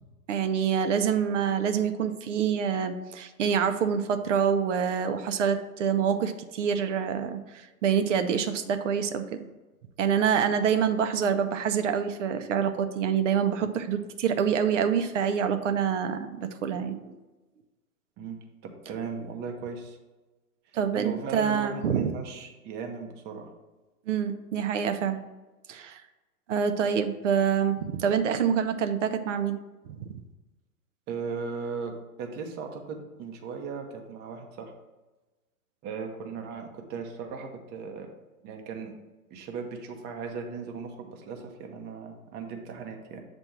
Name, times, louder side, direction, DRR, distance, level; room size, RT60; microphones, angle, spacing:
voice 1, 0.3-9.5 10.0-17.1 20.7-22.1 24.1-25.2 25.7-26.0 26.5-29.6 30.1-30.2, right 7 dB, 55° right, 8 dB, 0.7 m, -26 dB
voice 2, 18.9-20.0 20.9-23.5 31.1-34.7 35.8-38.1 38.4-38.9 39.3-43.2, right 5 dB, 20° right, 3 dB, 0.8 m, -37 dB
7.5 x 2.6 x 5.9 m, 1.2 s
figure-of-eight pair, 115°, 45 cm